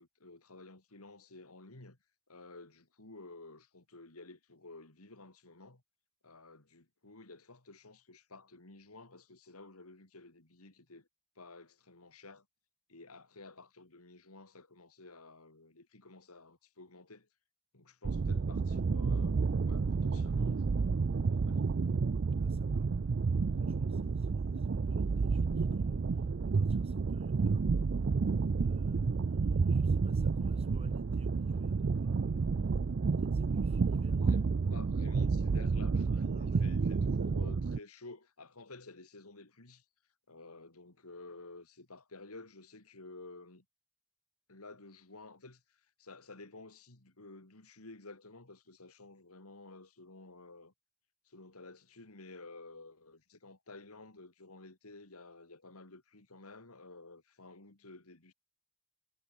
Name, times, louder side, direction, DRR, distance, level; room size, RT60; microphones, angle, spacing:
voice 1, 0.0-2.0 2.3-5.8 6.2-11.1 11.4-12.5 12.9-17.3 17.7-21.6 34.2-34.4 34.7-39.8 40.3-43.6 44.5-50.7 51.2-58.3, left 3 dB, 80° left, 2.9 m, -53 dB
sound 1, 18.0-37.8, right 4 dB, 50° right, 0.4 m, -30 dB
voice 2, 22.4-27.7 28.0-28.2 28.6-32.8 33.2-34.8 35.7-35.9 36.3-37.3, right 1 dB, 25° right, 5.4 m, -58 dB
head